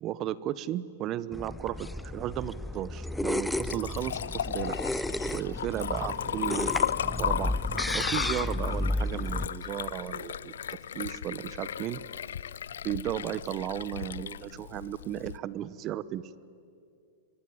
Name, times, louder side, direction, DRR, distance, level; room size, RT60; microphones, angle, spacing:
voice 1, 0.0-4.8 5.3-6.7 7.2-7.5 7.9-10.5 10.9-12.0 12.8-16.3, right 12 dB, 35° right, 18 dB, 1.0 m, -34 dB
sound 1, 1.3-9.5, left 1 dB, 5° left, 0.8 m, -33 dB
Liquid, 3.4-15.4, left 9 dB, 75° left, 0.6 m, -35 dB
26.0 x 23.0 x 9.6 m, 2.4 s
hypercardioid pair, 110°, 0 cm